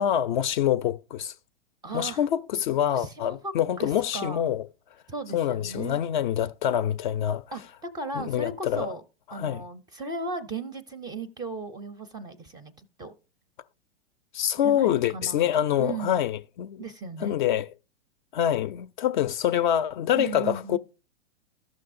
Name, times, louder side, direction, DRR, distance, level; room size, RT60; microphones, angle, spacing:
voice 1, 0.0-1.3 1.9-4.7 5.3-7.4 8.1-8.9 9.3-9.6 14.3-16.8 17.2-17.6 18.3-20.8, left 10 dB, 45° left, 0.4 m, -26 dB
voice 2, 1.8-2.2 2.9-4.5 5.1-6.0 7.5-7.6 7.9-9.0 9.3-12.7 13.0-13.1 14.6-15.5 15.8-16.2 16.8-17.4 20.1-20.8, right 3 dB, 10° right, 0.5 m, -36 dB
14.0 x 6.2 x 2.5 m
hypercardioid pair, 120°, 35 cm